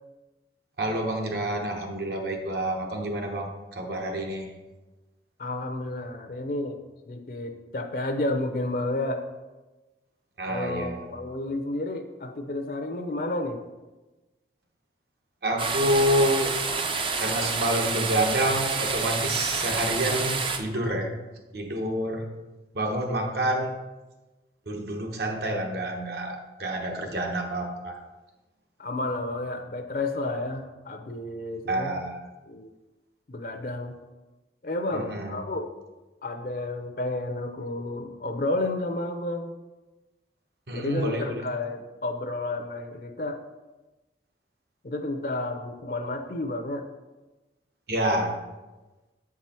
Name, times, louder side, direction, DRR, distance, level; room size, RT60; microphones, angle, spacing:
voice 1, 0.8-4.5 10.4-11.0 15.4-16.6 17.2-21.1 21.5-22.3 22.7-23.7 24.7-28.0 31.7-32.2 34.9-35.4 40.7-41.5 47.9-48.4, right 1 dB, 60° right, 2 dB, 1.1 m, -28 dB
voice 2, 5.4-9.2 10.5-13.6 28.8-31.9 32.5-32.7 33.3-33.9 34.6-35.7 36.2-39.5 40.7-43.4 44.8-46.8, left 2 dB, 50° left, 6 dB, 0.6 m, -31 dB
sound 1, 15.6-20.6, right 4 dB, 30° right, 0.5 m, -28 dB
7.6 x 4.8 x 4.4 m, 1.1 s
head